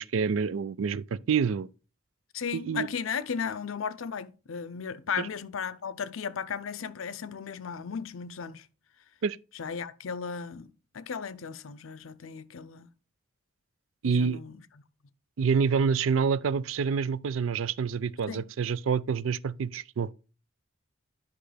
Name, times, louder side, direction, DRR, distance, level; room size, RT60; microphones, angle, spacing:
voice 1, 0.0-1.7 2.5-2.9 9.2-9.4 14.0-14.4 15.4-20.1, right 6 dB, 80° right, 0.4 m, -27 dB
voice 2, 2.3-8.7 9.5-12.9 14.0-14.6 18.3-18.5, left 6 dB, 90° left, 0.6 m, -35 dB
10.0 x 5.4 x 3.3 m
head